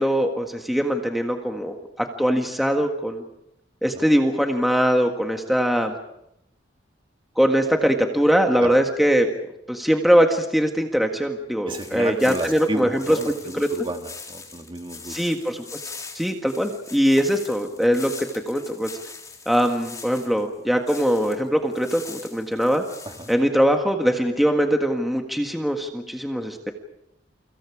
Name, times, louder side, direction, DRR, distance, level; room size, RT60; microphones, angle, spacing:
voice 1, 0.0-3.2 3.8-6.0 7.4-9.3 9.7-13.2 13.5-13.7 15.1-15.8 16.1-18.9 19.4-22.8 23.3-26.7, equal, ahead, 3 dB, 1.7 m, -21 dB
sound 1, 11.7-21.4 21.7-23.3, left 4 dB, 20° left, 3.7 m, -41 dB
voice 2, 11.7-15.2 23.1-23.3, right 1 dB, 25° right, 5 dB, 2.0 m, -32 dB
29.5 x 25.0 x 4.9 m, 0.80 s
head